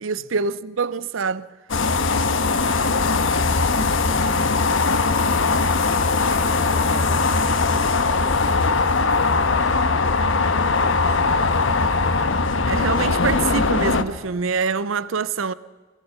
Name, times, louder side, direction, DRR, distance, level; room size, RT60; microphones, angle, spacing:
voice 1, 0.0-1.5 12.7-15.5, right 5 dB, 85° right, 0.6 m, -25 dB
sound 1, 1.7-14.0, left 4 dB, 75° left, 1.1 m, -20 dB
voice 2, 3.3-4.7 6.2-10.3 10.7-12.1, equal, 15° left, 3.7 m, -40 dB
22.5 x 19.5 x 5.9 m
head